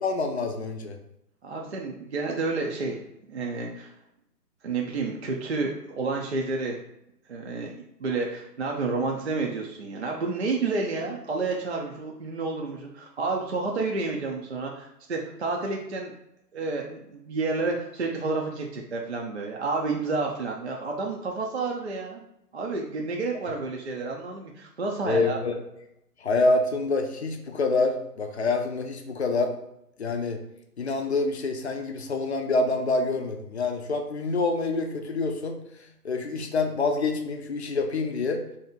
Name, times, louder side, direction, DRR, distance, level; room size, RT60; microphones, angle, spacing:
voice 1, 0.0-1.0 25.1-25.5 26.2-29.6 30.0-30.4 30.8-35.6 36.0-38.4, left 3 dB, 45° left, 4 dB, 0.5 m, -26 dB
voice 2, 1.4-3.0 3.3-3.9 4.6-6.8 7.3-7.7 8.0-16.1 16.5-22.2 22.5-25.4, right 3 dB, 45° right, 0 dB, 0.4 m, -30 dB
3.2 x 2.7 x 3.6 m, 0.81 s
figure-of-eight pair, 135°, 49 cm